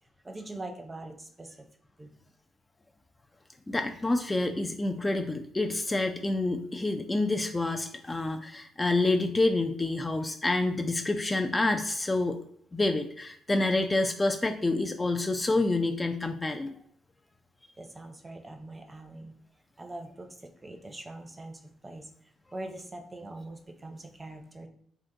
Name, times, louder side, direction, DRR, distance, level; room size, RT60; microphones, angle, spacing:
voice 1, 0.2-1.7 2.0-2.1 17.8-19.3 19.8-22.1 22.5-24.7, right 2 dB, 20° right, 5 dB, 0.6 m, -43 dB
voice 2, 3.7-12.4 12.7-16.7, left 2 dB, 20° left, 5 dB, 0.3 m, -28 dB
3.7 x 2.4 x 3.7 m, 0.70 s
cardioid pair, 90°, 0 cm